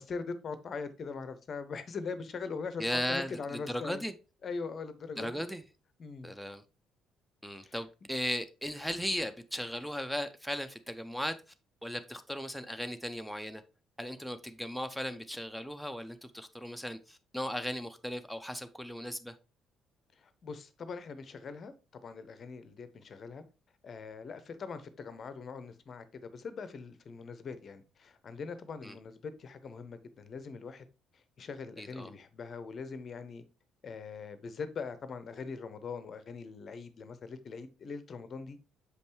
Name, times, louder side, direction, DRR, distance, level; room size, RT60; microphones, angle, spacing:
voice 1, 0.0-4.1 4.4-5.5 6.0-6.3 7.6-7.7 20.1-23.4 23.8-30.8 31.1-33.4 33.8-38.6, left 5 dB, 40° left, 0.6 m, -42 dB
voice 2, 2.8-4.1 5.2-5.6 6.2-6.6 7.4-11.3 11.8-13.6 14.0-19.3 28.8-29.0 31.8-32.1, equal, ahead, 0.5 m, -37 dB
6.5 x 5.2 x 3.0 m
figure-of-eight pair, 45°, 0 cm